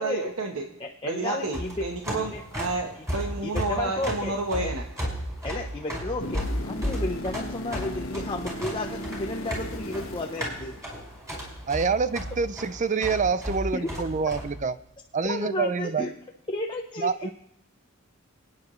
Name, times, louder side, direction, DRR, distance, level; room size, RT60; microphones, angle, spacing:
voice 1, 0.0-0.6 1.0-4.8, right 2 dB, 90° right, 2 dB, 1.2 m, -30 dB
voice 2, 0.8-1.8 2.2-2.6 2.9-3.0 3.4-4.3 4.6-4.7 5.4-10.7 13.7-13.9 15.3-16.1 16.5-17.1, left 2 dB, 25° left, 0 dB, 0.8 m, -33 dB
sound 1, 1.4-14.5, equal, 15° right, 5.1 m, -34 dB
sound 2, 6.2-11.3 15.2-15.3, left 1 dB, 75° left, 1.4 m, -37 dB
voice 3, 11.7-14.7 15.1-16.1 17.0-17.3, right 5 dB, 35° right, 14 dB, 0.5 m, -26 dB
28.5 x 9.5 x 3.2 m, 0.83 s
head